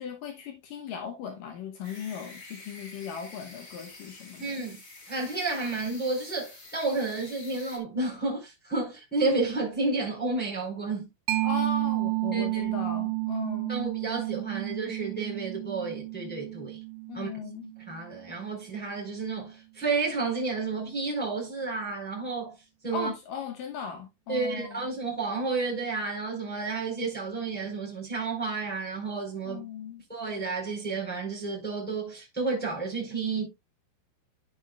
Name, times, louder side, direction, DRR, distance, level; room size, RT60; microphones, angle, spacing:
voice 1, 0.0-4.7 11.4-13.8 17.1-17.7 22.9-24.9 29.5-30.0, left 6 dB, 85° left, 1.9 m, -37 dB
sound 1, 1.8-7.8, left 3 dB, 65° left, 0.8 m, -48 dB
voice 2, 4.4-4.8 5.1-11.1 12.3-12.7 13.7-16.8 17.1-17.3 17.9-22.5 22.8-23.1 24.3-29.6 30.1-33.5, right 3 dB, ahead, 3.2 m, -31 dB
Mallet percussion, 11.3-18.6, right 22 dB, 90° right, 3.0 m, -31 dB
11.5 x 7.3 x 2.3 m
omnidirectional pair, 5.3 m